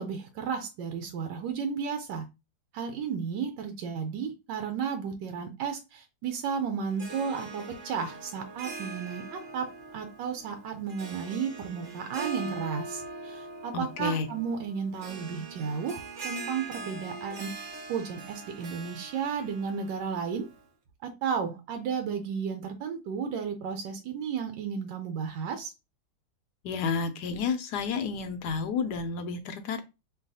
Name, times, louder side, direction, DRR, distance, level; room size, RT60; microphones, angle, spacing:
voice 1, 0.0-2.2 2.7-20.5 21.0-25.7, right 6 dB, 85° right, 6 dB, 1.3 m, -33 dB
Harp, 6.9-20.6, right 3 dB, 50° right, 1.0 m, -42 dB
voice 2, 13.7-14.3 26.6-29.8, left 5 dB, 75° left, 8 dB, 1.1 m, -31 dB
6.3 x 2.3 x 2.6 m, 0.26 s
omnidirectional pair, 1.9 m